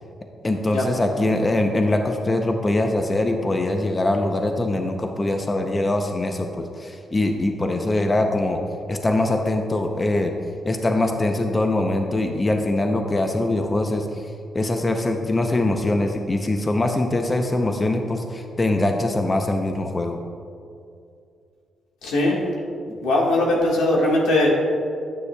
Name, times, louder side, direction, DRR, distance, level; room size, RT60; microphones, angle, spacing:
voice 1, 0.4-8.6 8.9-10.3 10.6-14.3 14.5-20.2, left 2 dB, 25° left, 4 dB, 0.6 m, -22 dB
voice 2, 22.0-22.4 23.0-24.5, left 1 dB, 90° left, -3 dB, 1.6 m, -19 dB
9.8 x 8.1 x 2.3 m, 2.4 s
cardioid pair, 70°, 0 cm